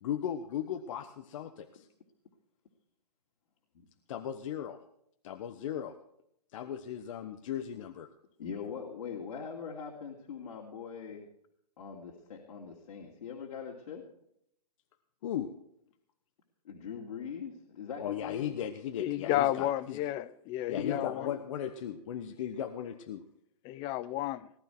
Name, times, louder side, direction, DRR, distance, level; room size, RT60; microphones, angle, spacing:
voice 1, 0.0-1.9 4.1-4.8 5.2-5.9 6.5-8.1 15.2-15.5 18.0-20.0 20.7-23.2, left 9 dB, 50° left, 1.1 m, -37 dB
voice 2, 8.4-11.3 11.8-14.0 16.6-18.5 20.8-21.4, left 6 dB, 65° left, 2.9 m, -41 dB
voice 3, 19.0-21.3 23.6-24.5, left 14 dB, 25° left, 0.6 m, -32 dB
18.5 x 11.5 x 4.6 m
hypercardioid pair, 140°, 21 cm